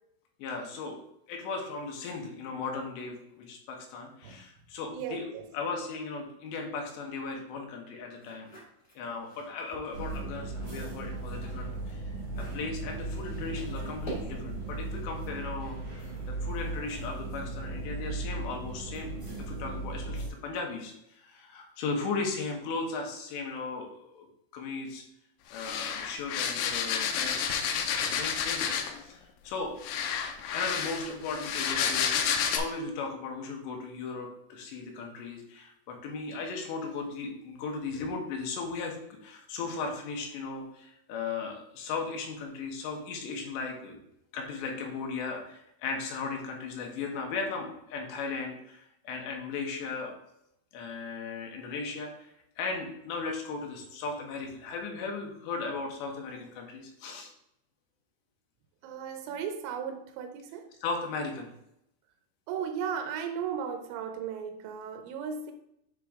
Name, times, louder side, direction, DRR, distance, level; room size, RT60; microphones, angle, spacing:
voice 1, 0.4-1.0 1.3-5.3 5.5-8.5 9.0-12.0 12.4-19.1 19.5-24.3 24.5-25.0 25.5-27.6 27.9-28.7 29.0-29.8 30.3-32.3 32.5-39.0 39.2-44.0 44.3-50.1 50.7-52.3 52.6-57.3 60.8-61.5, left 4 dB, 75° left, 2 dB, 3.1 m, -37 dB
voice 2, 4.9-5.4 58.8-60.7 62.5-65.5, right 7 dB, 80° right, 5 dB, 2.9 m, -36 dB
sound 1, 8.1-10.4 10.8-14.6, right 2 dB, 25° left, 1.4 m, -47 dB
sound 2, 9.9-20.3, right 2 dB, 30° right, 1.1 m, -37 dB
sound 3, 25.5-29.0 29.8-32.6, left 7 dB, 90° left, 2.3 m, -30 dB
8.6 x 3.7 x 3.6 m, 0.78 s
omnidirectional pair, 5.5 m